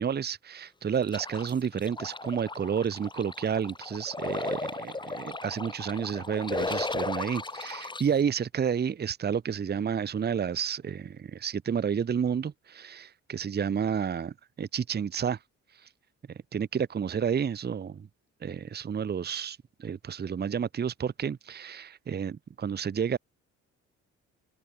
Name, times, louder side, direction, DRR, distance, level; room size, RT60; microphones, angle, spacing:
voice 1, 0.0-15.4 15.7-15.9 16.3-18.1 18.4-23.2, right 7 dB, 35° right, 0.8 m, -31 dB
sound 1, 1.1-8.0, left 3 dB, 15° left, 1.3 m, -35 dB
cardioid pair, 90°, 30 cm